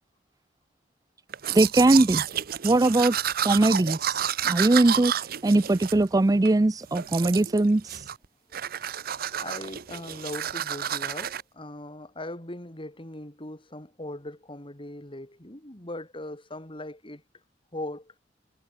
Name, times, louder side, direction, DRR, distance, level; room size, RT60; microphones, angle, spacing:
Domestic sounds home sounds, 1.3-6.5 6.9-7.6 7.9-8.2 8.5-11.4, right 10 dB, 55° right, 0.7 m, -30 dB
voice 1, 1.5-2.3 2.6-3.2 3.4-5.1 5.4-8.0, right 2 dB, 20° right, 0.4 m, -21 dB
voice 2, 9.4-17.2 17.7-18.1, left 1 dB, 30° left, 3.9 m, -39 dB
head